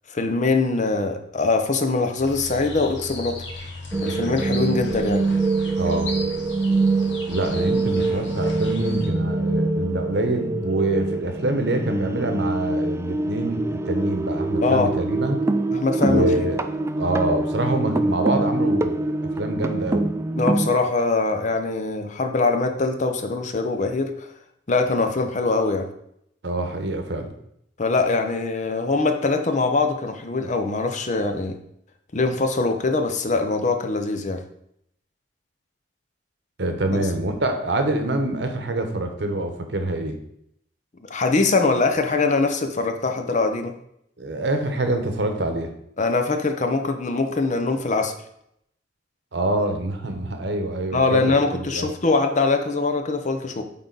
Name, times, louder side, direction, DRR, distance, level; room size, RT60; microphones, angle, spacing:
voice 1, 0.1-3.4 4.0-5.3 14.6-14.9 15.7-16.5 20.4-24.3 24.7-25.9 27.8-31.6 32.1-34.4 41.1-43.7 46.0-48.1 50.9-53.6, left 3 dB, 45° left, 6 dB, 0.7 m, -22 dB
sound 1, 2.2-9.1, left 2 dB, 80° left, 1.4 m, -37 dB
sound 2, 3.9-20.8, right 2 dB, 15° right, 0.3 m, -24 dB
voice 2, 5.8-6.2 7.3-15.4 16.0-16.6 17.0-19.0 19.4-20.1 26.4-27.3 36.6-40.2 44.2-45.7 49.3-51.9, right 1 dB, 70° right, 6 dB, 1.0 m, -25 dB
8.6 x 3.9 x 4.0 m, 0.75 s
head